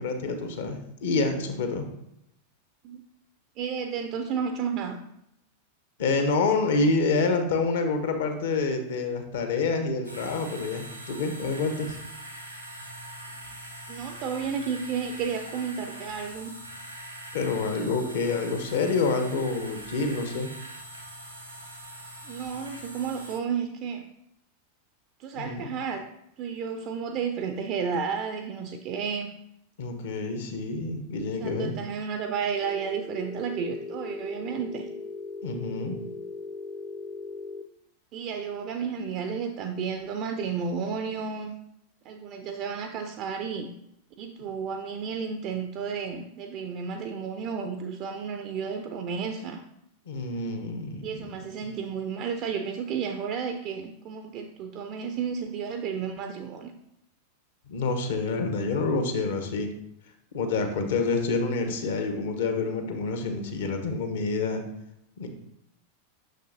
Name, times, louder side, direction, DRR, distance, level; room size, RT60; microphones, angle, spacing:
voice 1, 0.0-1.9 6.0-12.0 17.3-20.5 25.3-25.7 29.8-31.7 35.4-36.0 50.1-51.4 57.7-59.7 60.3-64.6 65.2-65.3, left 3 dB, 60° left, 6 dB, 1.0 m, -27 dB
voice 2, 3.6-5.0 13.9-16.5 22.3-24.0 25.2-26.1 26.4-29.3 31.4-34.9 38.1-41.5 42.1-43.7 44.2-49.6 51.0-56.7, right 6 dB, 40° right, 6 dB, 0.5 m, -32 dB
sound 1, 10.0-23.4, right 1 dB, 85° right, 1.3 m, -42 dB
Telephone, 32.6-37.6, left 3 dB, 10° left, 0.5 m, -38 dB
6.6 x 6.4 x 2.7 m, 0.78 s
figure-of-eight pair, 90°, 0 cm